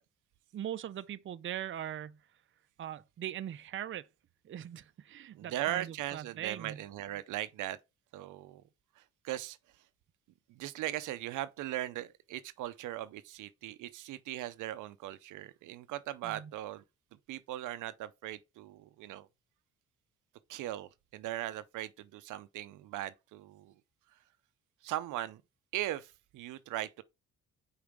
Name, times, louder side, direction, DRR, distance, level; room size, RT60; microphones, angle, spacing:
voice 1, 0.5-2.2 2.8-4.1 4.4-6.8 16.2-16.5, right 10 dB, 40° right, 0.5 m, -41 dB
voice 2, 5.3-7.8 8.1-8.6 9.0-9.6 10.5-16.8 17.3-19.3 20.5-23.7 24.8-25.4 25.7-27.0, right 14 dB, 85° right, 0.6 m, -39 dB
5.2 x 4.8 x 4.7 m
cardioid pair, 90°, 30 cm